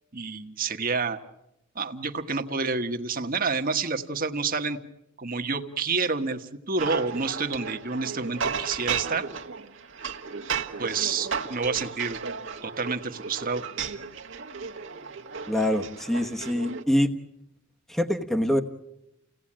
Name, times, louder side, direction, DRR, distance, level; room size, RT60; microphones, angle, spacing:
voice 1, 0.1-1.2 1.7-4.8 5.2-9.3 10.8-12.2 12.6-13.6, right 4 dB, 45° right, 6 dB, 1.5 m, -29 dB
sound 1, 6.8-16.8, right 6 dB, 65° right, 1.5 m, -34 dB
voice 2, 15.5-17.1 17.9-18.6, equal, ahead, 4 dB, 1.1 m, -25 dB
29.5 x 18.0 x 8.8 m, 0.90 s
head